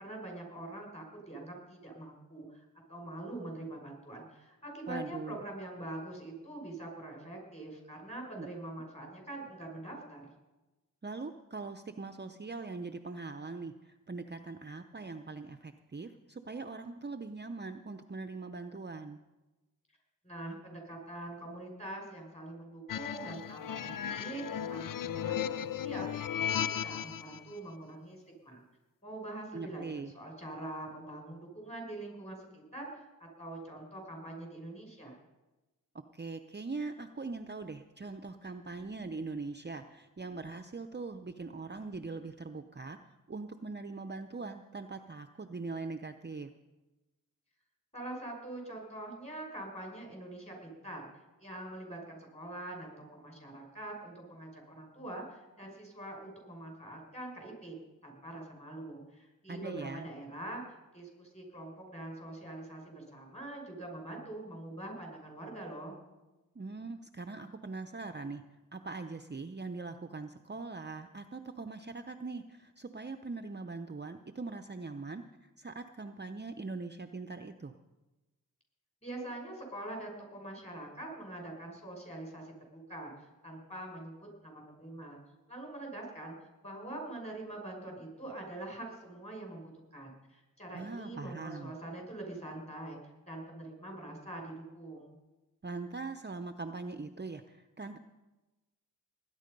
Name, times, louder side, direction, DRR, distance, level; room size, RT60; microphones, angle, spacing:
voice 1, 0.0-10.3 20.2-26.3 26.5-28.6 29.0-33.1 33.4-35.2 47.9-51.0 51.4-57.8 58.0-60.6 60.9-65.9 79.0-85.2 85.5-86.4 86.6-93.0 93.2-95.2, right 1 dB, 20° left, 1 dB, 5.9 m, -44 dB
voice 2, 4.9-5.4 8.4-8.5 11.0-19.2 29.5-30.1 35.9-43.0 43.3-46.5 59.5-60.1 66.5-68.4 68.7-77.7 90.7-91.7 95.6-98.0, right 3 dB, 30° right, 8 dB, 0.7 m, -41 dB
sound 1, 22.9-27.4, left 9 dB, 65° left, 0.5 m, -35 dB
19.5 x 9.8 x 5.3 m, 1.1 s
cardioid pair, 55°, 35 cm